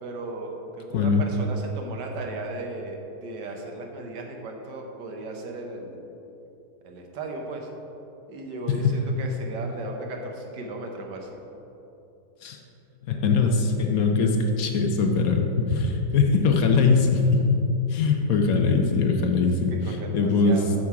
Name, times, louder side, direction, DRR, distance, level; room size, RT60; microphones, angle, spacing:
voice 1, 0.0-6.0 6.8-7.7 8.3-11.4 19.7-20.7, right 2 dB, 85° right, 2 dB, 1.5 m, -36 dB
voice 2, 0.9-1.2 8.7-9.0 12.4-12.6 13.1-17.6 17.9-20.6, left 4 dB, 65° left, 3 dB, 1.0 m, -22 dB
7.1 x 5.9 x 4.7 m, 2.9 s
omnidirectional pair, 1.8 m